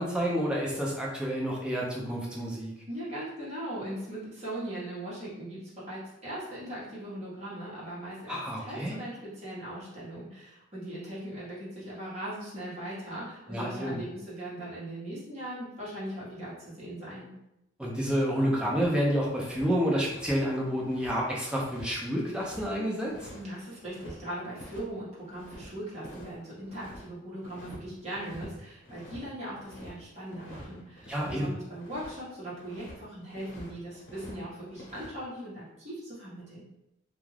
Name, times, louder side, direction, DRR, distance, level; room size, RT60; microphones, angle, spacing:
voice 1, 0.0-2.7 8.3-9.0 13.5-14.0 17.8-23.1 31.1-31.5, equal, 5° right, -4 dB, 0.5 m, -29 dB
voice 2, 2.9-17.3 23.3-36.6, right 1 dB, 35° right, -8 dB, 1.1 m, -39 dB
sound 1, 18.8-19.7 20.0-24.2 24.6-24.8 25.1-27.0 27.4-27.8 28.1-28.5 28.8-32.2 32.5-33.0 33.3-34.4 34.6-35.2, left 1 dB, 80° left, 0.8 m, -47 dB
2.4 x 2.3 x 3.2 m, 0.87 s
head